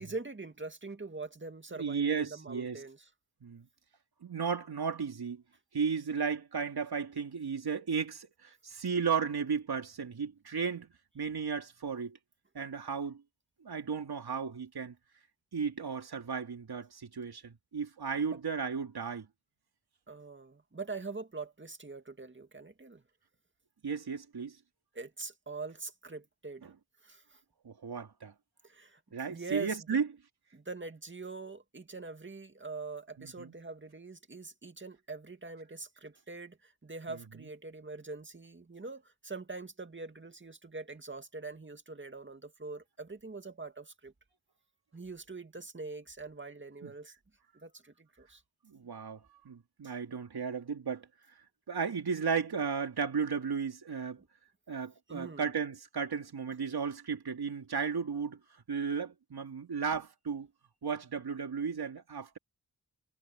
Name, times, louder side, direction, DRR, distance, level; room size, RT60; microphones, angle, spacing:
voice 1, 0.0-3.0 18.1-18.4 20.1-23.0 24.9-26.6 27.0-27.4 28.6-29.0 29.3-29.8 30.5-44.1 44.9-47.1 47.5-48.4 49.8-49.9 54.2-54.3 55.1-55.5, right 3 dB, 30° right, 2.2 m, -43 dB
voice 2, 1.7-2.8 3.4-3.7 4.2-5.4 5.7-12.2 12.5-13.2 13.6-14.9 15.5-19.3 23.8-24.6 26.6-26.7 27.6-28.3 29.1-30.1 33.2-33.5 46.8-46.9 48.7-49.2 49.4-51.1 51.7-54.2 54.7-58.4 58.7-60.5 60.8-62.4, right 6 dB, 80° right, 3.0 m, -34 dB
wide cardioid pair, 65°, 37 cm